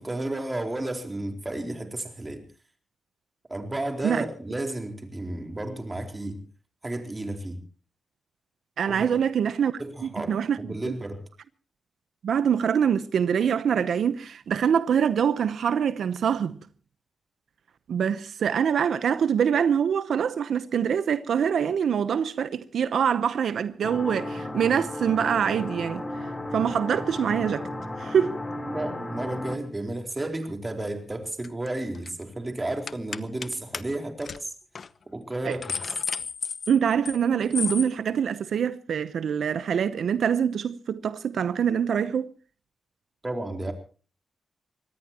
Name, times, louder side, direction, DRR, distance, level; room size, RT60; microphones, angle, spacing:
voice 1, 0.0-2.4 3.5-6.4 6.8-7.6 8.9-9.2 9.8-11.2 28.7-34.5 35.1-35.8 43.2-43.7, right 1 dB, 20° right, 4.2 m, -32 dB
voice 2, 8.8-10.9 12.2-16.6 17.9-27.7 28.0-28.4 35.4-35.6 36.7-42.3, right 8 dB, 80° right, 0.8 m, -25 dB
sound 1, 23.8-29.6, left 1 dB, 20° left, 3.6 m, -34 dB
sound 2, 31.4-31.7 31.9-32.2 32.9-33.5 33.7-33.8 34.2-34.4 34.8-34.9 35.3-37.2 37.5-37.9, left 5 dB, 55° left, 0.9 m, -32 dB
25.0 x 19.0 x 3.0 m
cardioid pair, 90°, 0 cm